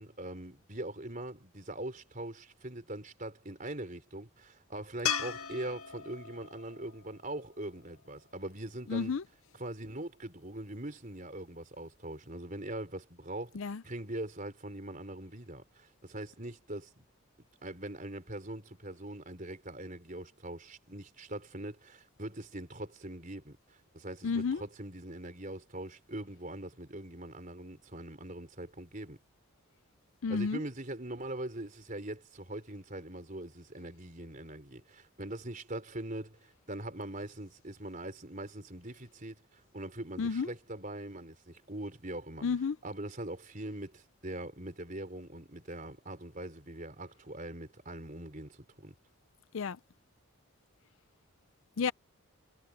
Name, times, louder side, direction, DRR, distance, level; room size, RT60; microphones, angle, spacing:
voice 1, 0.0-9.1 9.6-17.1 17.6-29.2 30.3-42.5 42.8-48.9, right 1 dB, 35° right, 4.4 m, -42 dB
sound 1, 5.1-8.3 11.6-11.7, left 8 dB, 80° left, 1.9 m, -38 dB
voice 2, 8.9-9.2 13.5-13.8 24.2-24.6 30.2-30.6 40.2-40.5 42.4-42.8 49.5-49.8 51.8-51.9, left 5 dB, 65° left, 0.5 m, -31 dB
head